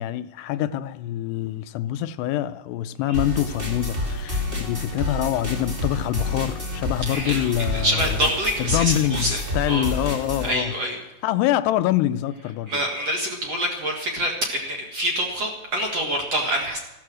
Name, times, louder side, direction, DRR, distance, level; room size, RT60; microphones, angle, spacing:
voice 1, 0.0-8.3 8.6-10.7 11.2-12.9, left 12 dB, 80° left, 2.6 m, -25 dB
sound 1, 3.1-10.5, left 2 dB, 20° right, 1.8 m, -29 dB
voice 2, 7.1-9.4 9.7-9.9 10.4-11.0 12.7-16.8, equal, 50° right, 2.1 m, -26 dB
14.0 x 13.0 x 6.3 m
omnidirectional pair, 4.9 m